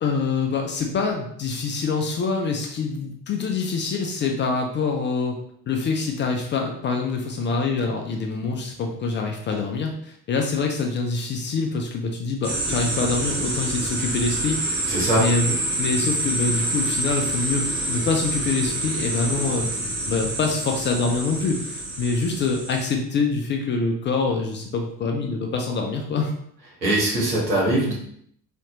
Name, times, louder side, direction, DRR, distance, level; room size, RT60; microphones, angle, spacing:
voice 1, 0.0-5.4 5.7-19.7 20.1-26.3, left 4 dB, 25° left, 2 dB, 0.3 m, -25 dB
sound 1, 12.4-22.9, right 2 dB, 35° right, 1.3 m, -27 dB
voice 2, 14.9-15.2 26.8-27.9, right 1 dB, 85° right, -5 dB, 1.1 m, -21 dB
4.0 x 2.4 x 2.9 m, 0.67 s
figure-of-eight pair, 50°, 50 cm